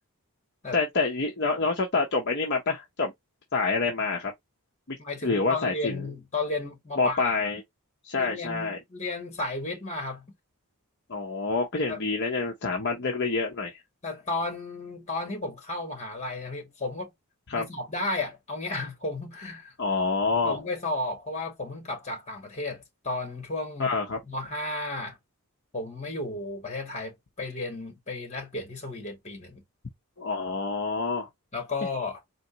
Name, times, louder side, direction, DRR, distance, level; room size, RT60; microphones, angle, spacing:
voice 1, 0.7-3.1 3.5-4.3 4.9-5.0 5.2-6.0 7.0-7.6 8.0-8.8 11.1-13.8 17.5-17.7 19.8-20.6 23.8-24.2 30.2-31.3, left 3 dB, 50° left, 0.8 m, -27 dB
voice 2, 5.0-7.4 8.2-10.3 11.9-12.0 14.0-17.1 17.5-19.7 20.4-23.9 24.3-25.2 25.7-29.6 31.5-32.2, left 2 dB, 30° left, 1.9 m, -33 dB
4.2 x 3.0 x 2.8 m
head